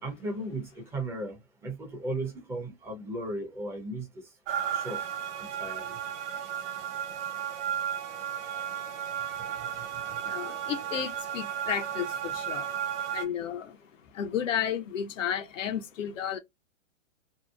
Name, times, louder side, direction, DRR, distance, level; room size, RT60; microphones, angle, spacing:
voice 1, 0.0-4.3 4.7-5.0 5.4-6.0, right 2 dB, 5° right, 0.5 m, -36 dB
sound 1, 4.5-13.3, right 9 dB, 45° right, 1.0 m, -34 dB
voice 2, 9.8-16.4, left 9 dB, 70° left, 0.7 m, -33 dB
2.7 x 2.0 x 2.3 m
hypercardioid pair, 125°, 39 cm